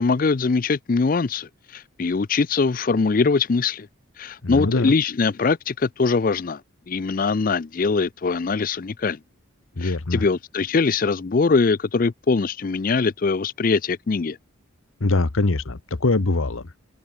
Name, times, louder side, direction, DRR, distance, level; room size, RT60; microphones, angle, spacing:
voice 1, 0.0-3.9 4.2-6.6 6.9-9.2 9.8-14.4, left 4 dB, 40° left, 0.4 m, -22 dB
voice 2, 4.4-4.9 9.8-10.2 15.0-16.6, left 2 dB, 80° left, 1.1 m, -22 dB
open air
head